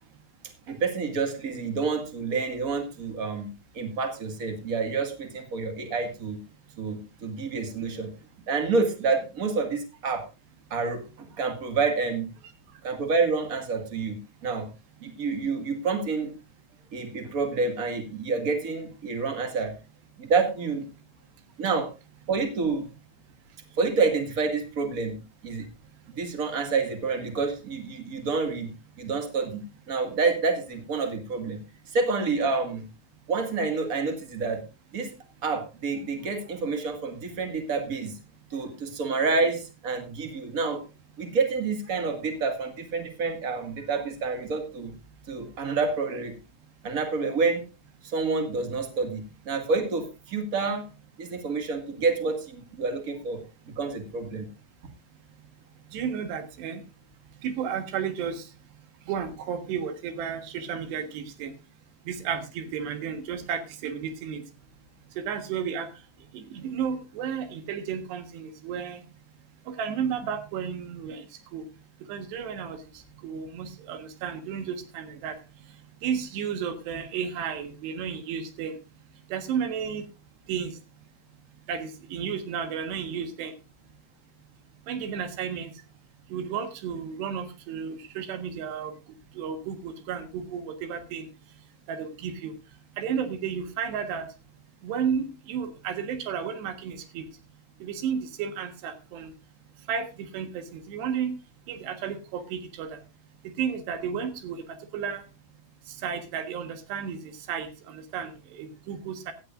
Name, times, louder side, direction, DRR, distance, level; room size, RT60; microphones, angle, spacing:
voice 1, 0.7-3.5 3.7-6.4 6.8-8.1 8.5-10.2 10.7-12.3 12.8-14.2 14.4-14.7 15.0-16.3 16.9-19.7 20.2-20.8 21.6-21.9 22.3-22.8 23.8-25.1 25.4-25.6 26.2-28.7 29.0-29.6 29.9-31.6 31.9-32.8 33.3-34.6 34.9-35.1 35.4-38.1 38.5-40.8 41.2-44.9 45.3-46.3 46.8-47.6 48.0-50.8 51.2-53.4 53.7-54.4, right 4 dB, 40° right, 5 dB, 1.3 m, -28 dB
voice 2, 55.9-56.8 57.4-58.5 59.1-61.5 62.1-64.4 65.2-65.9 66.3-69.0 69.7-71.3 71.5-71.6 72.1-75.4 76.0-78.8 79.3-80.0 80.5-80.8 81.7-83.5 84.9-85.7 86.3-88.9 89.4-91.3 91.9-92.5 93.0-94.3 94.8-97.3 97.8-99.3 99.9-101.4 101.7-103.0 103.6-104.7 104.9-105.2 105.9-109.3, right 7 dB, 85° right, 8 dB, 3.7 m, -32 dB
16.5 x 12.0 x 2.5 m, 0.29 s
omnidirectional pair, 4.7 m